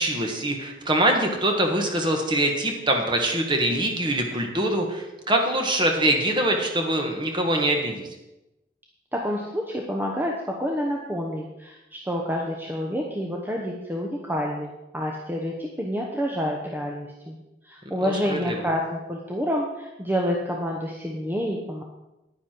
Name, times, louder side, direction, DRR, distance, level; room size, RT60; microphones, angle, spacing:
voice 1, 0.0-8.1 18.0-18.7, right 1 dB, 25° right, 3 dB, 1.5 m, -24 dB
voice 2, 9.1-17.3 17.6-21.8, equal, 10° right, -1 dB, 0.9 m, -28 dB
9.9 x 9.9 x 4.5 m, 0.97 s
head